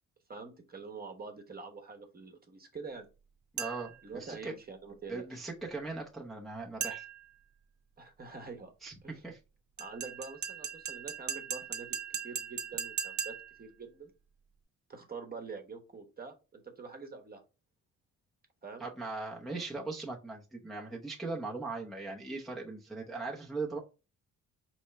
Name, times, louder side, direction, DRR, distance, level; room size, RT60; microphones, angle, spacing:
voice 1, 0.3-3.1 4.0-5.3 8.0-8.7 9.0-9.2 9.8-12.0 12.2-14.1 14.9-17.4 18.6-18.8, right 4 dB, 30° right, 4 dB, 1.1 m, -45 dB
voice 2, 3.5-4.5 5.1-7.0 8.8-9.4 18.8-23.8, right 3 dB, ahead, -3 dB, 0.8 m, -39 dB
sound 1, 3.6-4.0 6.8-7.3 9.8-13.6, right 7 dB, 70° right, 0.9 m, -38 dB
4.4 x 3.2 x 3.2 m, 0.31 s
cardioid pair, 90°, 30 cm